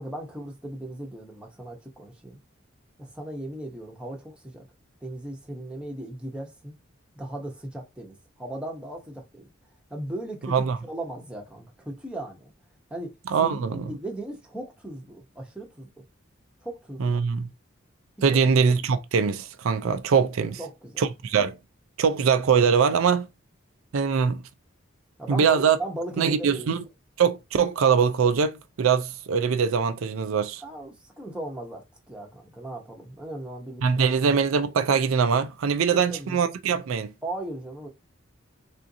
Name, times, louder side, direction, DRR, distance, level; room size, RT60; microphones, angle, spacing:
voice 1, 0.0-2.4 3.0-4.7 5.0-6.7 7.2-9.5 9.9-12.5 12.9-13.1 13.4-15.9 16.6-17.1 18.3-18.4 20.4-21.0 25.2-26.8 30.6-34.1 35.9-36.4 37.2-37.9, right 1 dB, 5° right, 0.8 m, -37 dB
voice 2, 13.3-13.8 17.0-17.5 18.2-20.6 21.0-21.5 22.0-23.3 23.9-24.4 25.3-25.8 26.2-26.8 27.2-30.6 33.8-37.1, right 6 dB, 75° right, 0.4 m, -22 dB
3.6 x 2.5 x 2.6 m
head